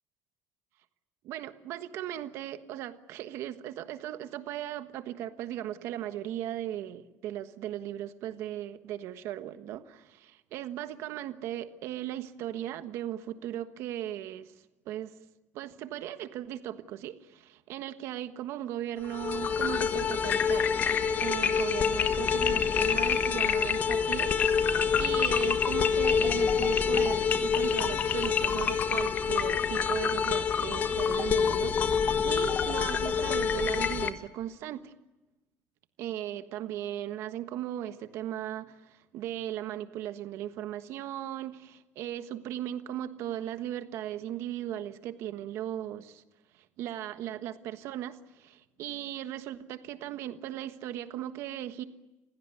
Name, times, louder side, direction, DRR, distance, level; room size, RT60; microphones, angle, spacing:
voice 1, 1.2-14.5 14.8-15.1 15.5-20.7 21.2-24.7 25.0-34.9 36.0-46.2 46.5-51.8, right 12 dB, 60° right, 10 dB, 1.4 m, -37 dB
sound 1, 19.0-34.1, left 6 dB, 35° left, 1.2 m, -26 dB
28.5 x 16.5 x 9.8 m, 1.0 s
cardioid pair, 170°, 5 cm